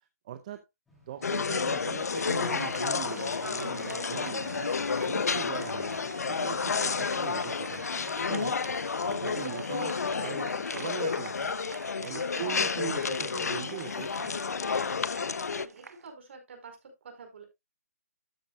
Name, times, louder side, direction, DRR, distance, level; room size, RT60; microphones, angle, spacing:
voice 1, 0.2-0.6 1.1-6.0 6.3-7.9 8.2-8.6 9.0-11.5 12.0-14.4, right 10 dB, 30° right, 10 dB, 0.6 m, -41 dB
sound 1, 0.9-10.2, equal, 5° left, 3.0 m, -60 dB
sound 2, 1.2-15.7, left 5 dB, 85° left, 0.7 m, -31 dB
voice 2, 1.2-1.5 12.2-12.5 15.6-17.4, right 4 dB, 50° right, 4 dB, 4.9 m, -49 dB
Applause, 2.1-16.1, right 4 dB, 85° right, 1.2 m, -47 dB
13.0 x 7.0 x 2.4 m, 0.21 s
hypercardioid pair, 165°, 8 cm